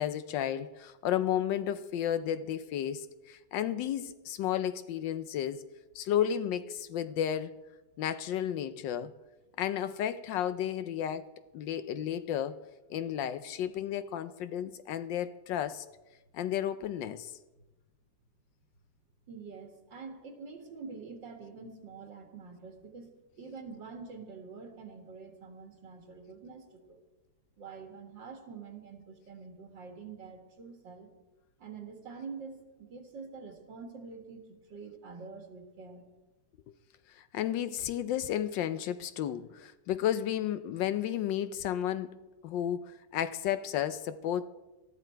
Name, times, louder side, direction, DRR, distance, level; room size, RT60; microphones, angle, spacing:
voice 1, 0.0-5.7 5.9-7.6 8.0-9.1 9.6-11.3 11.5-12.6 12.9-15.9 16.3-17.4 37.1-42.2 42.4-44.5, left 10 dB, 80° left, 1.3 m, -32 dB
voice 2, 19.3-27.0 27.6-31.1 31.6-36.0, right 5 dB, 80° right, 2.7 m, -46 dB
19.0 x 13.5 x 4.5 m
omnidirectional pair, 2.0 m